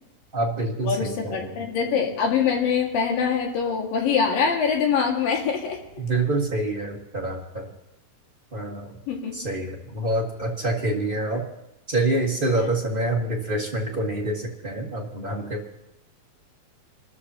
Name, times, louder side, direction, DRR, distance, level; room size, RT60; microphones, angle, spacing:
voice 1, 0.3-1.5 6.0-7.7 8.5-9.0 9.3-11.4 11.9-15.8, right 2 dB, 55° right, -2 dB, 0.5 m, -26 dB
voice 2, 0.8-5.8 9.1-9.4 12.5-12.7, left 6 dB, 75° left, 0 dB, 3.7 m, -24 dB
28.0 x 13.5 x 2.9 m, 0.90 s
omnidirectional pair, 4.1 m